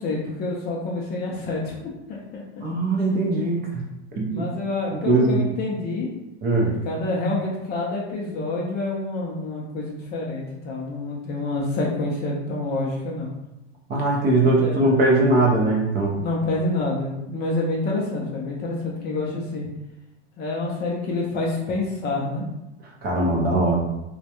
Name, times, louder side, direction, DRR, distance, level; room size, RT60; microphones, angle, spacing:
voice 1, 0.0-2.4 3.5-3.8 4.3-6.1 6.8-13.3 14.6-14.8 16.2-19.6 20.4-22.4, left 2 dB, 30° left, -3 dB, 0.4 m, -27 dB
voice 2, 2.6-3.9 4.1-4.4 4.9-5.4 6.4-6.7 13.9-16.2 23.0-23.8, right 2 dB, 25° right, -2 dB, 0.5 m, -20 dB
2.2 x 2.1 x 2.8 m, 0.96 s
supercardioid pair, 125°, 35 cm